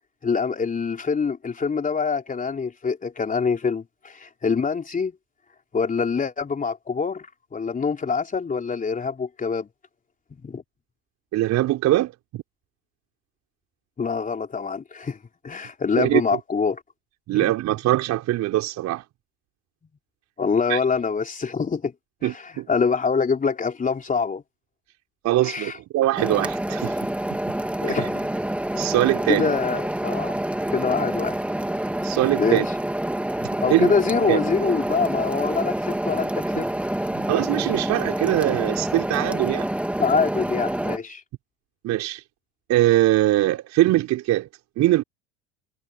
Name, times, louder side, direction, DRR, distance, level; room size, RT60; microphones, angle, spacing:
voice 1, 0.2-5.1 5.7-7.3 7.5-9.7 10.4-10.6 14.0-15.2 15.4-16.8 20.4-21.9 22.2-24.4 25.4-25.8 27.8-28.3 29.3-30.3 30.7-31.4 32.4-32.7 33.6-36.7 40.0-41.2, left 5 dB, 20° left, 3.7 m, -25 dB
voice 2, 11.3-12.4 16.0-16.2 17.3-19.0 20.7-20.8 22.2-22.7 25.2-27.0 27.9-28.1 28.8-29.5 32.0-32.6 33.7-33.9 34.3-34.4 37.1-39.7 41.8-42.2 42.7-44.5 44.8-45.0, right 15 dB, 50° right, 4.8 m, -22 dB
sound 1, 26.2-41.0, right 1 dB, 5° right, 2.9 m, -27 dB
hypercardioid pair, 75°, 35 cm